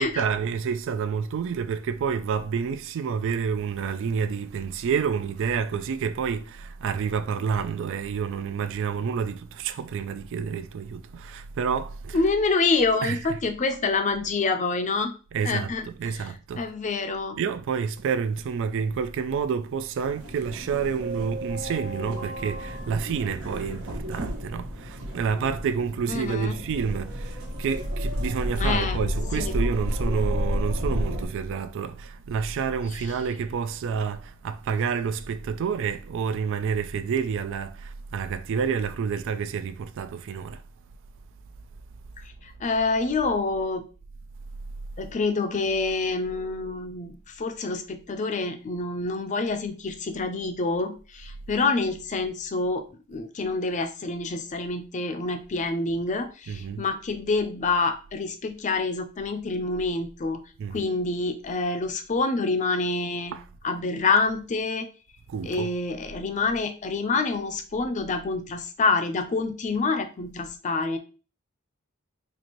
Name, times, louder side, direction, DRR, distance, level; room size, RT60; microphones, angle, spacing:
voice 1, 0.0-12.3 13.0-13.4 15.3-16.7 17.4-40.6 56.5-56.8 60.6-60.9 63.3-63.5 65.3-65.7, right 6 dB, 60° right, 0.3 m, -29 dB
voice 2, 12.1-15.1 15.4-15.9 16.6-17.4 26.1-26.5 28.6-29.1 29.4-29.6 42.4-43.8 45.0-52.8 53.1-60.4 60.7-63.4 63.6-64.9 65.4-71.0, left 3 dB, 35° left, 0.5 m, -27 dB
sound 1, 20.0-31.3, equal, 80° right, 1.2 m, -31 dB
4.2 x 2.5 x 3.0 m
head